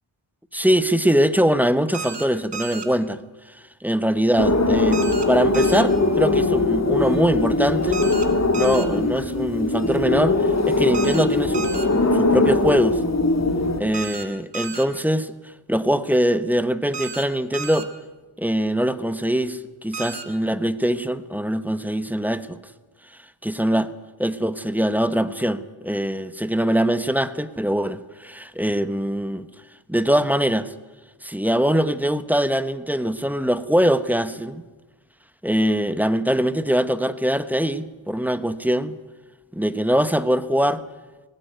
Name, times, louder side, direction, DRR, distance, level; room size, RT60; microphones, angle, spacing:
voice 1, 0.5-3.2 3.8-8.0 8.5-11.7 12.1-13.0 13.8-17.9 18.4-22.6 23.4-23.9 24.2-29.5 29.9-30.7 31.2-34.6 35.4-39.0 39.5-40.8, equal, 5° right, 12 dB, 1.0 m, -22 dB
sound 1, 1.9-2.3 2.5-2.9 4.9-5.3 5.5-5.8 7.9-8.3 8.5-8.9 10.9-11.3 11.5-11.9 13.9-14.2 14.5-14.9 16.9-17.2 17.5-17.8 19.9-20.2, right 5 dB, 55° right, 2.3 m, -33 dB
sound 2, 4.4-13.8, left 2 dB, 30° left, 2.5 m, -21 dB
18.5 x 18.0 x 9.2 m, 1.2 s
wide cardioid pair, 95°, 49 cm